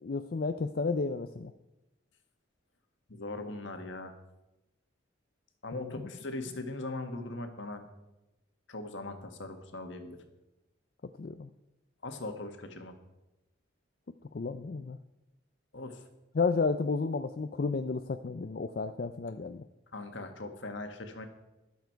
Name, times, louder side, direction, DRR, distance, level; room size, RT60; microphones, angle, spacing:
voice 1, 0.0-1.5 5.7-6.1 11.2-11.5 14.3-15.0 16.3-19.6, left 4 dB, 50° left, 9 dB, 0.4 m, -32 dB
voice 2, 3.1-4.1 5.6-7.9 8.7-10.2 12.0-12.9 15.7-16.0 19.9-21.3, left 2 dB, 70° left, 6 dB, 1.6 m, -40 dB
21.5 x 7.3 x 4.6 m, 0.98 s
head